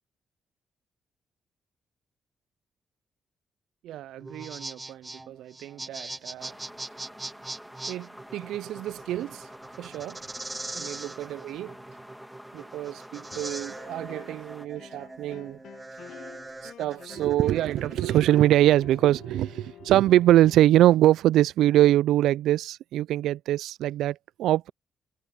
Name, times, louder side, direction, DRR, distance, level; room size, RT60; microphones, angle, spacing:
voice 1, 3.8-6.5 7.9-9.4 9.8-10.2 10.7-11.7 12.5-15.6 16.8-24.7, right 13 dB, 75° right, 0.4 m, -24 dB
sound 1, 4.2-18.9, right 2 dB, 25° right, 0.6 m, -41 dB
sound 2, 6.4-14.7, equal, ahead, 2.1 m, -47 dB
sound 3, 13.3-14.5 14.8-20.6, left 10 dB, 70° left, 0.7 m, -48 dB
open air
hypercardioid pair, 45°, 0 cm